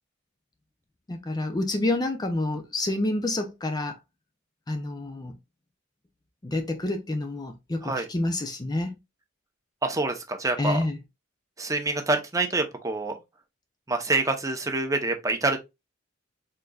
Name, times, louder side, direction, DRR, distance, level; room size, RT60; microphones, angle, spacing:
voice 1, 1.1-3.9 4.7-5.4 6.4-9.0 10.6-11.0, left 2 dB, 20° left, 0.5 m, -28 dB
voice 2, 9.8-10.8 11.6-13.1 13.9-15.6, right 2 dB, 15° right, 0.7 m, -26 dB
4.4 x 3.8 x 2.3 m
head